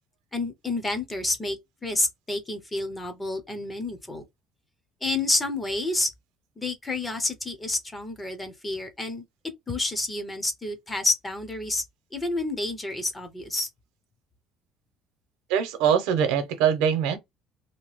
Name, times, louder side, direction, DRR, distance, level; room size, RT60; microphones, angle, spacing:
voice 1, 0.3-4.2 5.0-6.1 6.6-9.2 9.7-11.8 12.1-13.7, left 2 dB, 10° left, 0.6 m, -29 dB
voice 2, 15.5-17.2, right 8 dB, 80° right, 0.8 m, -23 dB
2.8 x 2.2 x 3.1 m
cardioid pair, 180°, 0 cm